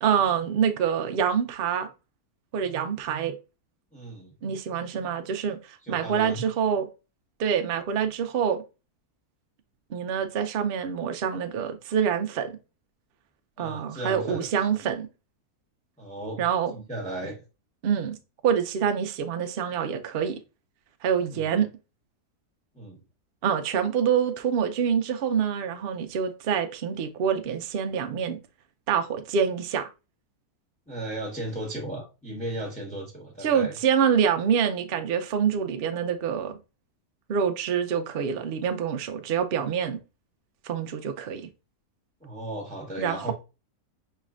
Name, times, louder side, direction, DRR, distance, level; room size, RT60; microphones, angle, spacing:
voice 1, 0.0-1.9 2.5-3.3 4.4-6.9 7.4-8.6 9.9-12.6 13.6-15.1 16.4-16.9 17.8-18.2 18.4-20.4 21.0-21.7 23.4-28.4 28.9-29.9 33.4-36.5 37.3-40.0 40.6-41.5 43.0-43.3, right 7 dB, 75° right, 0.5 m, -26 dB
voice 2, 3.9-4.3 5.8-6.5 13.6-14.5 16.0-16.4 16.7-17.4 21.3-21.6 22.7-23.0 30.9-33.8 42.2-43.3, right 1 dB, 5° left, 0.8 m, -35 dB
4.7 x 3.2 x 2.4 m
omnidirectional pair, 1.6 m